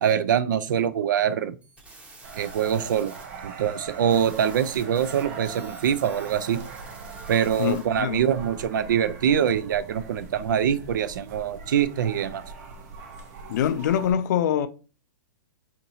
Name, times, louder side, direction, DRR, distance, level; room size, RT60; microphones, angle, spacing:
voice 1, 0.0-1.6 2.3-3.1 3.4-6.6 7.3-12.4, right 8 dB, 70° right, 0.4 m, -24 dB
sound 1, 1.6-7.8, right 2 dB, 10° right, 0.8 m, -49 dB
sound 2, 2.2-14.1, right 5 dB, 55° right, 0.8 m, -41 dB
voice 2, 7.6-8.2 13.5-14.7, left 9 dB, 65° left, 0.4 m, -24 dB
4.5 x 2.8 x 2.7 m
hypercardioid pair, 115°, 11 cm